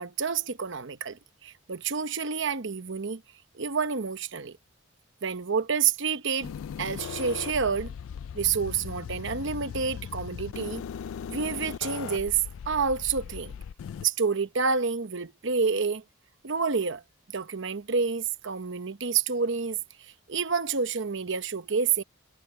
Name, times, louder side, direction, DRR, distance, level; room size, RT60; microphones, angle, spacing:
voice 1, 0.0-3.2 3.5-4.6 5.2-6.5 6.8-7.9 8.3-10.8 11.3-12.4 12.7-13.5 14.0-16.0 16.4-17.0 17.3-22.0, right 5 dB, 60° right, 1.0 m, -28 dB
sound 1, 6.4-14.1, left 7 dB, 75° left, 0.3 m, -38 dB
head